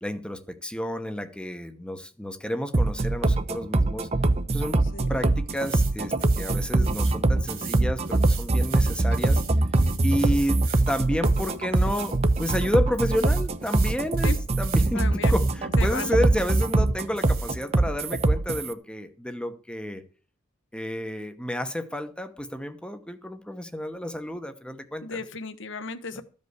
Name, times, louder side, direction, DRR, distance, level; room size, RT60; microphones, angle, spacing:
voice 1, 0.0-4.1 4.5-9.4 10.0-10.6 10.9-20.0 20.7-25.2 26.1-26.2, equal, 5° left, 0.9 m, -31 dB
sound 1, 2.7-18.7, right 2 dB, 30° right, 0.7 m, -23 dB
sound 2, 5.6-5.9 6.2-7.2 7.5-12.7 13.0-14.9 15.2-15.5 15.8-16.7 17.2-17.5, right 8 dB, 45° right, 1.9 m, -40 dB
voice 2, 10.0-10.4 14.2-14.4 14.9-15.4 15.8-16.2 25.0-26.2, left 4 dB, 65° left, 1.1 m, -35 dB
14.0 x 5.4 x 8.0 m
head